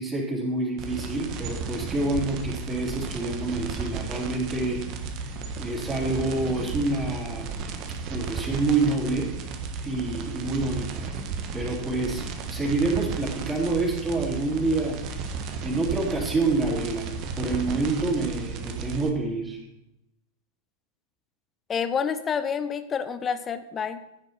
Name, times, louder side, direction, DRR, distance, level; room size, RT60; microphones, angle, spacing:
voice 1, 0.0-5.2 5.6-7.5 8.1-9.4 9.8-11.1 11.5-17.1 17.4-19.6, right 2 dB, 15° right, -4 dB, 4.0 m, -27 dB
sound 1, 0.8-19.1, right 5 dB, 40° right, 1.5 m, -34 dB
voice 2, 21.7-24.0, left 6 dB, 20° left, 11 dB, 0.9 m, -28 dB
14.5 x 9.4 x 4.6 m, 0.86 s
figure-of-eight pair, 90°, 0 cm